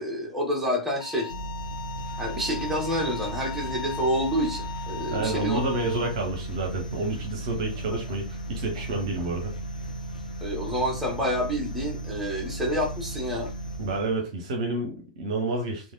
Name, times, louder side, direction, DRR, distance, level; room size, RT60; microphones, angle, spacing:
voice 1, 0.0-1.3 2.2-5.9 7.9-8.0 10.4-13.5, equal, 5° right, -2 dB, 1.1 m, -28 dB
Bowed string instrument, 1.0-6.1, left 7 dB, 40° left, 0.4 m, -38 dB
sound 1, 1.3-14.3, right 2 dB, 85° left, 0.6 m, -36 dB
voice 2, 5.1-9.5 13.8-15.9, right 2 dB, 55° right, 3 dB, 0.7 m, -29 dB
3.2 x 2.3 x 2.6 m, 0.32 s
figure-of-eight pair, 95°, 4 cm